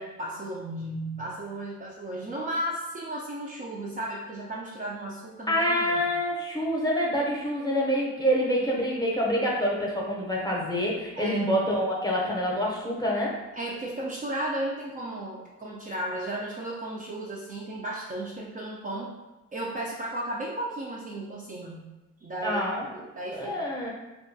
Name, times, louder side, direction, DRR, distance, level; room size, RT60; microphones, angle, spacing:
voice 1, 0.0-6.0 11.2-11.6 13.6-19.1 19.5-21.8 22.2-22.6 22.9-23.6, right 1 dB, 25° right, -4 dB, 0.4 m, -34 dB
voice 2, 5.5-13.4 22.4-22.9 23.3-23.9, equal, 15° left, -3 dB, 0.7 m, -26 dB
2.7 x 2.3 x 2.6 m, 1.1 s
cardioid pair, 90°, 30 cm